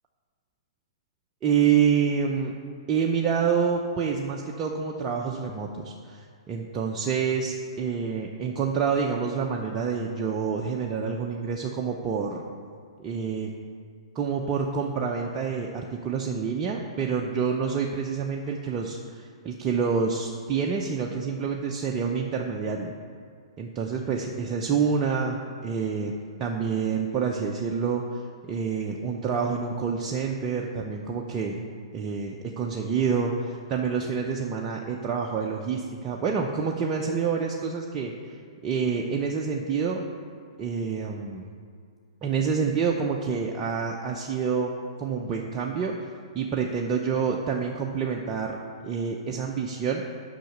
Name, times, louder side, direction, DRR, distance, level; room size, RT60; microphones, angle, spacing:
voice 1, 1.4-2.5 2.9-12.4 13.0-13.5 14.1-22.9 23.6-28.0 28.5-38.1 38.6-40.0 40.6-41.4 42.2-45.9 46.3-48.6 48.8-50.0, right 6 dB, 25° right, 0 dB, 0.7 m, -27 dB
7.7 x 5.8 x 6.6 m, 2.2 s
hypercardioid pair, 120°, 3 cm